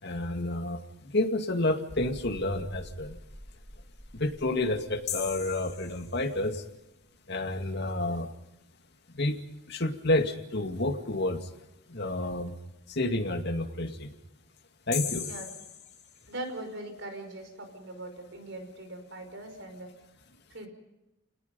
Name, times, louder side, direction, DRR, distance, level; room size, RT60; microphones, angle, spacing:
voice 1, 0.0-3.2 4.1-6.6 7.3-8.3 9.1-9.4 9.7-11.5 11.9-12.5 12.9-14.1 14.9-15.3, left 2 dB, 50° left, 5 dB, 2.3 m, -30 dB
sound 1, 1.9-7.3 7.6-7.7 8.2-8.3, equal, 25° right, 2.5 m, -49 dB
sound 2, 5.1-6.6 14.9-16.7, left 8 dB, 35° left, 5.1 m, -38 dB
voice 2, 16.3-19.9 20.5-20.7, right 1 dB, 55° right, 6 dB, 5.3 m, -41 dB
29.5 x 19.5 x 5.4 m, 0.95 s
head